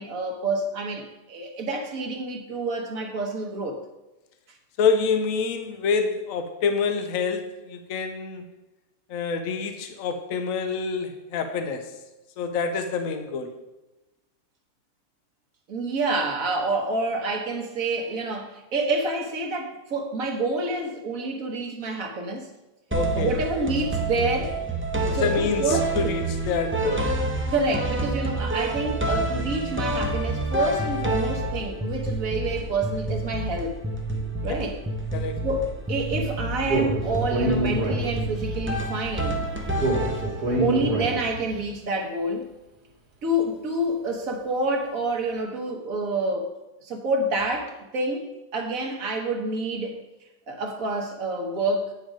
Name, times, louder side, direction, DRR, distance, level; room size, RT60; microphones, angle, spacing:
voice 1, 0.0-3.8 15.7-22.5 23.1-24.6 25.0-26.2 27.5-33.7 34.4-34.7 35.4-39.4 40.6-42.4 43.2-46.5 46.8-50.0 50.5-51.9, right 2 dB, 60° right, 3 dB, 1.5 m, -28 dB
voice 2, 4.8-8.4 9.1-11.9 12.4-13.5 22.9-23.3 25.1-27.1 35.1-35.5 40.0-40.2, left 5 dB, 60° left, 7 dB, 1.2 m, -27 dB
sound 1, 22.9-40.7, right 2 dB, 15° right, 0.4 m, -28 dB
Speech, 36.7-38.5 39.8-41.5, right 1 dB, 80° right, 2.3 m, -26 dB
8.7 x 6.3 x 5.0 m, 1.0 s
omnidirectional pair, 1.7 m